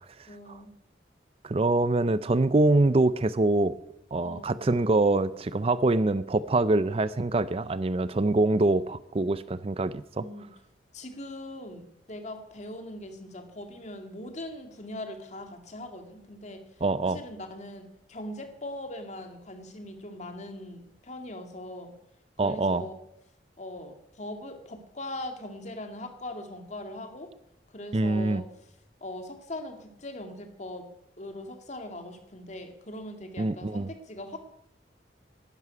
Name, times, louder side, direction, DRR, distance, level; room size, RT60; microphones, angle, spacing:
voice 1, 0.3-0.7 4.2-4.6 10.2-10.5 10.9-11.8 12.1-16.6 17.0-21.9 22.4-23.0 23.6-27.3 27.7-28.4 29.0-30.9 31.2-34.4, left 1 dB, 40° left, 5 dB, 2.2 m, -40 dB
voice 2, 1.4-3.7 4.1-10.2 16.8-17.2 22.4-22.8 27.9-28.4 33.4-33.9, right 2 dB, 35° right, 15 dB, 0.5 m, -24 dB
12.5 x 11.0 x 9.5 m, 0.81 s
head